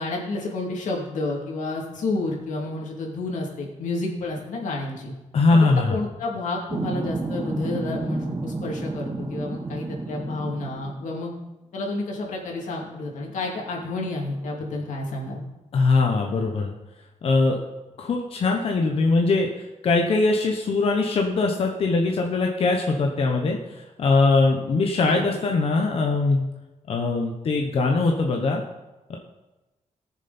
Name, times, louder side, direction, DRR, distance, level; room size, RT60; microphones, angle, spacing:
voice 1, 0.0-5.1 5.7-11.3 11.7-15.4 25.1-25.4, left 2 dB, 85° left, -1 dB, 2.9 m, -30 dB
voice 2, 5.3-6.0 15.7-16.7 17.2-17.6 18.0-26.5 26.9-28.6 29.1-29.2, left 3 dB, 50° left, 1 dB, 1.0 m, -21 dB
sound 1, 6.7-11.2 12.5-12.6 13.0-15.0, right 3 dB, 20° right, 0.6 m, -32 dB
19.5 x 7.2 x 4.3 m, 1.1 s
wide cardioid pair, 170°, 13 cm